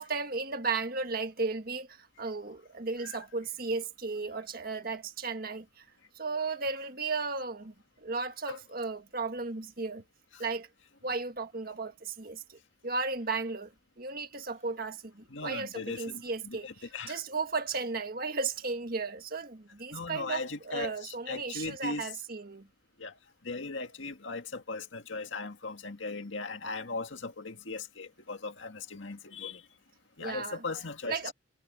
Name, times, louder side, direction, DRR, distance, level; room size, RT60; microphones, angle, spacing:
voice 1, 0.0-5.8 6.2-10.0 10.4-10.7 11.0-16.7 17.1-22.7 30.2-30.6 31.0-31.3, right 4 dB, 50° right, 1.7 m, -35 dB
voice 2, 15.3-17.2 19.9-22.2 23.0-23.1 23.4-29.6 30.2-31.3, left 3 dB, 70° left, 1.9 m, -38 dB
head